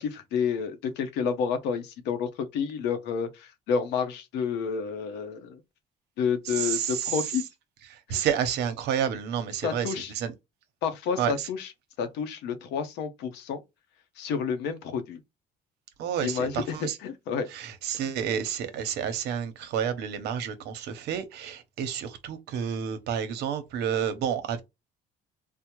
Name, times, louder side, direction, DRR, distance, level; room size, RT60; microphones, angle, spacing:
voice 1, 0.0-5.6 6.2-7.4 8.1-8.3 9.6-10.1 10.8-11.7 12.0-13.6 14.2-15.2 16.2-17.5, left 6 dB, 85° left, 0.7 m, -30 dB
voice 2, 6.4-7.3 7.9-10.3 11.2-11.5 16.0-17.0 17.5-24.6, right 8 dB, 80° right, 0.7 m, -30 dB
3.5 x 2.0 x 2.9 m
cardioid pair, 110°, 17 cm